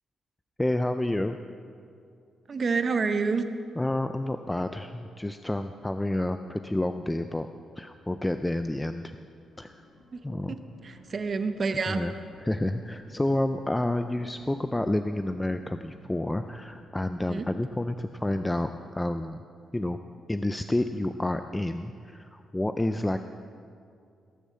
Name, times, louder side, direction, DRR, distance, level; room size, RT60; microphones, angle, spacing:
voice 1, 0.6-1.4 3.8-7.5 7.8-9.1 9.6-9.7 10.2-10.6 11.9-12.1 12.4-19.4 19.7-20.0 20.3-23.2, left 1 dB, 10° left, 8 dB, 0.3 m, -29 dB
voice 2, 2.5-3.5 10.1-10.2 10.5-10.6 10.8-12.0 17.2-17.5, right 4 dB, 35° right, 8 dB, 0.7 m, -28 dB
sound 1, 9.4-16.8, left 1 dB, 65° left, 3.7 m, -54 dB
18.0 x 6.9 x 7.6 m, 2.5 s
cardioid pair, 155°, 0 cm